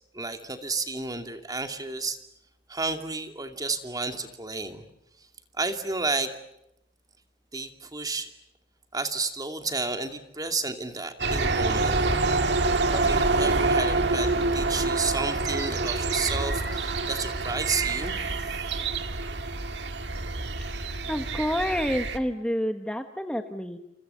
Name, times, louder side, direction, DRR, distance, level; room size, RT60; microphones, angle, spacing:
voice 1, 0.1-2.2 2.7-4.8 5.5-6.3 7.5-8.3 8.9-12.0 12.9-18.6, right 3 dB, 20° right, 6 dB, 2.5 m, -31 dB
sound 1, 11.2-22.2, right 3 dB, 70° right, 2.1 m, -26 dB
voice 2, 21.1-23.8, equal, 5° left, 6 dB, 1.3 m, -28 dB
29.5 x 28.5 x 6.9 m, 0.84 s
head